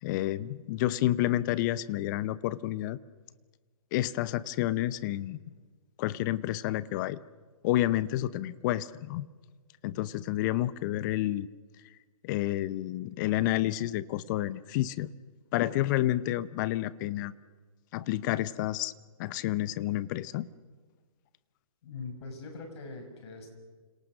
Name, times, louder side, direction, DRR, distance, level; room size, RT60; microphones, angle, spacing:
voice 1, 0.0-3.0 3.9-5.4 6.0-7.2 7.6-9.3 9.8-11.5 12.2-15.1 15.5-17.3 17.9-18.9 19.2-20.5, left 15 dB, 35° left, 18 dB, 0.8 m, -29 dB
voice 2, 21.8-23.5, left 3 dB, 50° left, 5 dB, 6.8 m, -42 dB
29.0 x 27.0 x 6.5 m, 1.4 s
hypercardioid pair, 135°, 18 cm